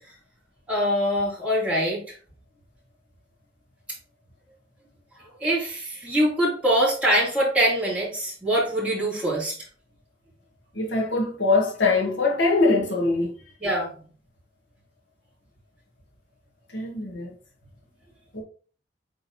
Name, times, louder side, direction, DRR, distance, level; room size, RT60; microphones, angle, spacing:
voice 1, 0.7-2.1 5.4-9.6 13.6-13.9, equal, 5° right, 3.3 m, -23 dB
voice 2, 10.7-13.4 16.7-17.3 18.3-18.4, left 3 dB, 75° left, 1.8 m, -23 dB
8.7 x 3.8 x 3.0 m
head